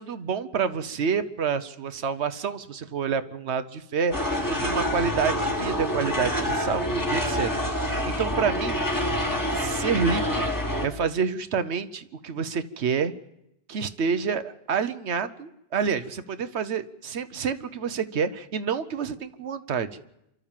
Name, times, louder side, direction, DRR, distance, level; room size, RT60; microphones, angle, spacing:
voice 1, 0.0-8.8 9.5-10.5 10.8-13.1 13.7-19.9, right 6 dB, 80° right, 11 dB, 1.2 m, -28 dB
sound 1, 4.1-10.9, left 1 dB, 20° left, 2.0 m, -27 dB
28.0 x 12.5 x 7.4 m, 0.84 s
omnidirectional pair, 1.1 m